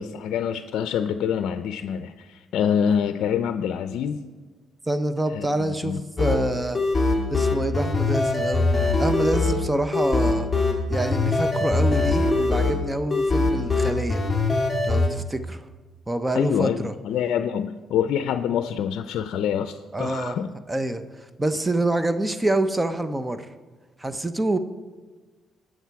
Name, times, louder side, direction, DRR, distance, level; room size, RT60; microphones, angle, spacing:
voice 1, 0.0-4.2 5.3-6.0 16.3-20.5, left 8 dB, 80° left, 9 dB, 0.5 m, -26 dB
voice 2, 4.9-6.8 7.3-8.7 9.0-10.5 10.9-14.2 14.8-15.7 16.1-16.9 19.9-20.4 20.7-23.5 24.0-24.6, right 1 dB, 15° right, 10 dB, 0.8 m, -26 dB
sound 1, 6.2-15.1, left 3 dB, 15° left, 2.2 m, -22 dB
18.5 x 6.4 x 4.7 m, 1.4 s
cardioid pair, 90°, 0 cm